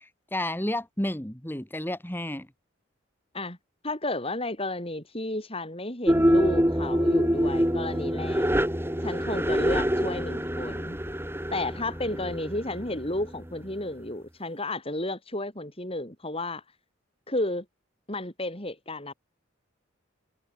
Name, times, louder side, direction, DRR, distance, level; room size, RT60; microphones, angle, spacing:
voice 1, 0.0-2.5, left 1 dB, 10° left, 2.3 m, -31 dB
voice 2, 3.8-8.5 9.0-11.0 11.5-16.6 17.3-17.7 18.1-19.1, left 2 dB, 30° left, 7.3 m, -32 dB
sound 1, 6.1-13.5, equal, 10° right, 7.3 m, -25 dB
head